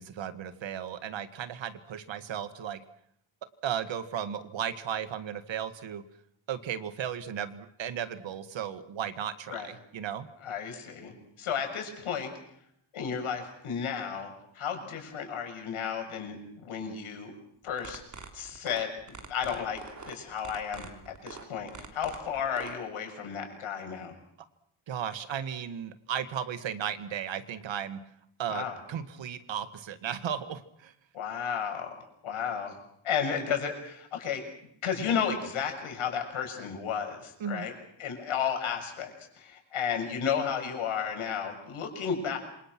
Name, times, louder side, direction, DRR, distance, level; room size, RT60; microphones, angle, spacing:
voice 1, 0.0-2.8 3.6-6.0 6.5-10.3 24.9-28.0 28.4-30.9 37.4-37.7, right 9 dB, 65° right, 11 dB, 2.0 m, -35 dB
voice 2, 10.4-12.3 12.9-17.3 17.6-18.0 18.3-18.9 19.3-24.1 28.5-28.8 31.1-32.8 33.0-34.4 34.8-37.7 38.0-42.4, left 7 dB, 80° left, 4 dB, 7.0 m, -33 dB
sound 1, 17.7-22.7, right 5 dB, 35° right, 3.3 m, -44 dB
27.5 x 26.0 x 6.1 m, 0.71 s
wide cardioid pair, 180°, 49 cm